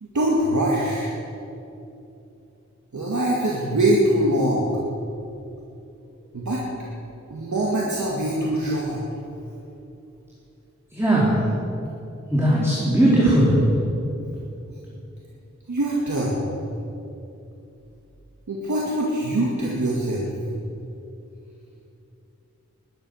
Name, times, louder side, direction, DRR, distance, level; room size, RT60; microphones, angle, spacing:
voice 1, 0.0-1.1 2.9-4.7 6.3-6.6 7.3-9.0 15.7-16.5 18.5-20.3, right 1 dB, 75° right, -4 dB, 2.2 m, -23 dB
voice 2, 10.9-11.4 12.3-13.6, right 1 dB, 10° right, -7 dB, 3.7 m, -18 dB
21.0 x 10.5 x 6.5 m, 2.8 s
wide cardioid pair, 80°, 29 cm